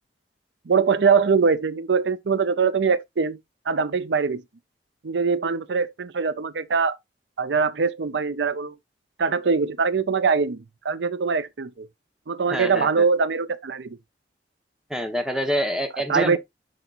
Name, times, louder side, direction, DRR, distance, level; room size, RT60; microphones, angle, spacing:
voice 1, 0.7-3.4 3.7-4.4 5.0-7.0 7.4-8.7 9.2-11.9 12.3-14.0 16.1-16.4, right 5 dB, 80° right, 0.6 m, -22 dB
voice 2, 12.5-13.0 14.9-16.4, equal, 5° right, 1.1 m, -26 dB
10.5 x 4.0 x 2.5 m
head